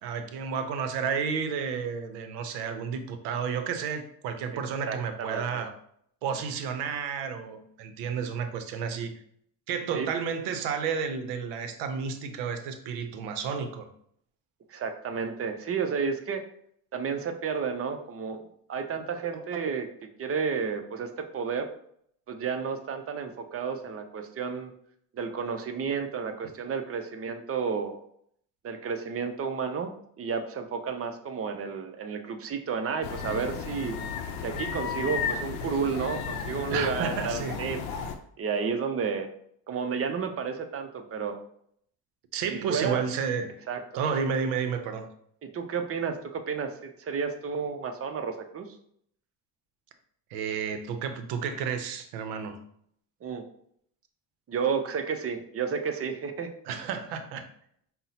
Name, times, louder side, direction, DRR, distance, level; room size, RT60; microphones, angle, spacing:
voice 1, 0.0-5.7 6.2-9.1 9.7-13.9 19.2-19.6 36.7-37.6 42.3-43.5 43.9-45.1 50.3-52.6 56.7-57.4, right 6 dB, 85° right, 8 dB, 0.6 m, -31 dB
voice 2, 4.5-5.6 9.9-10.1 14.7-16.4 16.9-18.4 18.7-21.7 22.3-24.7 25.1-28.0 28.6-29.9 30.2-34.0 34.4-37.8 38.4-39.3 39.7-41.4 42.5-43.0 43.7-44.0 45.4-48.7 53.2-53.4 54.5-56.5, right 6 dB, 35° right, 7 dB, 0.5 m, -31 dB
sound 1, 33.0-38.2, left 7 dB, 85° left, 0.6 m, -34 dB
5.4 x 2.1 x 2.7 m, 0.67 s
supercardioid pair, 85°, 40 cm